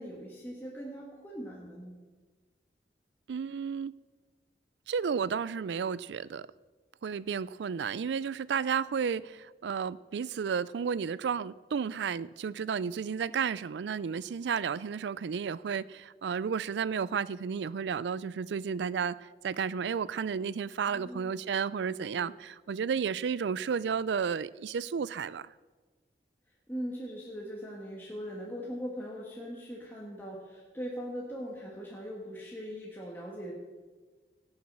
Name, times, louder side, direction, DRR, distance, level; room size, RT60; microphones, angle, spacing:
voice 1, 0.0-1.9 20.8-21.4 21.9-22.3 26.7-33.5, equal, 10° left, 1.6 m, -40 dB
voice 2, 3.3-3.9 4.9-6.5 7.0-25.5, right 6 dB, 85° right, 0.4 m, -32 dB
17.5 x 7.3 x 6.0 m
head